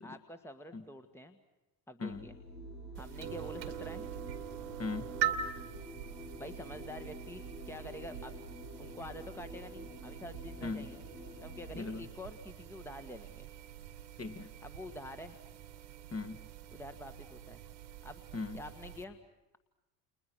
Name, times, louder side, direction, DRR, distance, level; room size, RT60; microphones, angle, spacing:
voice 1, 0.0-1.4 1.9-2.3 3.0-4.0 5.2-5.4 6.4-8.3 8.8-11.0 11.4-13.5 14.6-15.3 16.7-17.6 18.0-18.2 18.5-19.2, left 1 dB, 5° left, 9 dB, 1.6 m, -47 dB
sound 1, 2.1-11.7, right 1 dB, 75° left, 7.5 m, -48 dB
sound 2, 2.9-19.0, right 10 dB, 80° right, 2.0 m, -44 dB
voice 2, 4.8-5.1 10.6-10.9 11.7-12.1 14.2-14.5 16.1-16.5 18.3-18.6, left 3 dB, 30° left, 7 dB, 2.3 m, -39 dB
30.0 x 30.0 x 6.3 m, 1.0 s
figure-of-eight pair, 60°, 50 cm